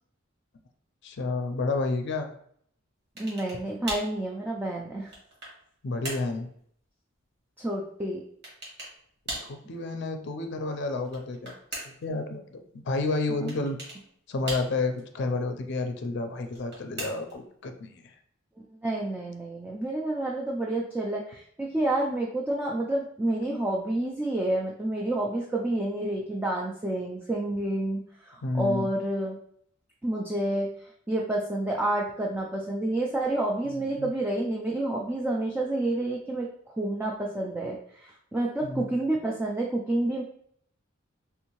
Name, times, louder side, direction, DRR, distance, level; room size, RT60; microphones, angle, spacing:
voice 1, 1.0-2.3 5.8-6.5 9.4-11.5 11.9-13.8 14.3-18.2 23.5-23.6 28.4-28.9 33.6-34.1 38.6-38.9, left 3 dB, 60° left, 6 dB, 0.5 m, -31 dB
voice 2, 3.2-5.1 7.6-8.2 13.4-13.5 18.8-29.4 30.0-30.7 31.1-40.2, right 1 dB, 10° right, -2 dB, 0.3 m, -29 dB
sound 1, 3.2-3.6 3.9-4.2 4.8-5.6 6.0-6.3 8.4-9.0 9.3-9.6 11.0-12.1 13.5-14.0 14.5-15.0 16.4-17.4, right 1 dB, 55° right, 1.4 m, -38 dB
3.5 x 2.7 x 3.0 m, 0.65 s
head